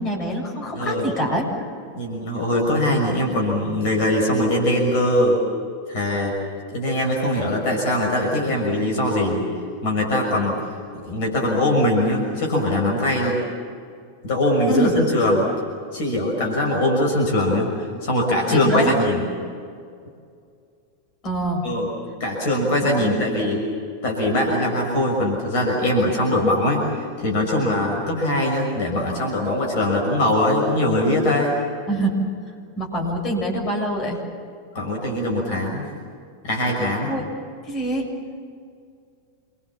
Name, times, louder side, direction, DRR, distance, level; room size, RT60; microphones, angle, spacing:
voice 1, 0.0-1.5 14.7-14.9 18.5-19.0 21.2-21.7 22.9-23.3 31.9-32.2 32.8-34.2 37.0-37.2 37.6-38.1, right 1 dB, 30° left, 1 dB, 7.3 m, -25 dB
voice 2, 0.7-1.1 2.0-5.4 5.9-6.4 6.7-9.5 9.8-10.6 10.9-13.4 14.2-15.5 15.9-17.7 18.0-19.3 21.6-21.9 22.2-23.6 24.0-31.6 34.7-35.9 36.4-37.1, left 1 dB, 50° left, 0 dB, 6.2 m, -21 dB
28.0 x 24.5 x 7.5 m, 2.2 s
figure-of-eight pair, 90°, 0 cm